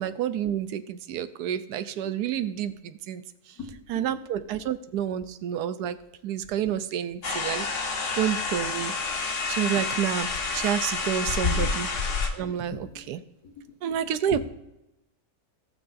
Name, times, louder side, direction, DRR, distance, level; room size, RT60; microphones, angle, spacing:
voice 1, 0.0-3.2 3.9-6.0 6.2-7.7 8.1-8.9 9.2-11.9 12.3-12.8 13.1-13.2 13.8-14.4, right 10 dB, 85° right, 12 dB, 1.2 m, -29 dB
voice 2, 3.6-4.7 6.7-6.8 8.2-8.3 9.1-9.2 11.5-11.8 12.5-13.1 13.4-14.0 14.3-14.4, left 3 dB, 70° left, 1 dB, 2.0 m, -42 dB
sound 1, 7.2-12.3, left 4 dB, 55° left, 1.4 m, -28 dB
18.0 x 6.2 x 2.6 m, 0.91 s
omnidirectional pair, 1.7 m